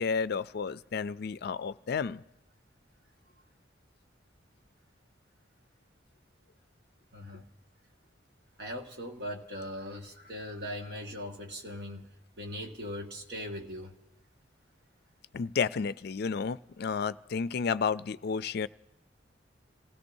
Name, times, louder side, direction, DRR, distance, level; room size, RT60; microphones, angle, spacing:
voice 1, 0.0-2.2 15.3-18.7, left 5 dB, 55° left, 0.4 m, -31 dB
voice 2, 7.1-7.4 8.6-12.1 12.4-13.9, equal, 60° right, 1.8 m, -40 dB
28.0 x 16.5 x 2.7 m
head